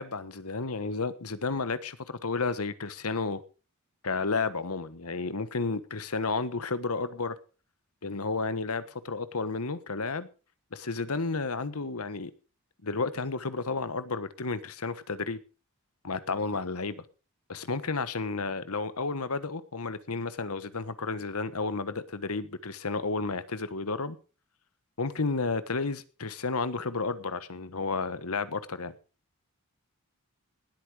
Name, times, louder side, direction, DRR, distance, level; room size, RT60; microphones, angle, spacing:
voice 1, 0.0-3.4 4.0-7.4 8.0-10.3 10.7-12.3 12.8-15.4 16.0-17.0 17.5-24.2 25.0-28.9, left 4 dB, 75° left, 1.3 m, -32 dB
19.0 x 8.7 x 5.0 m
head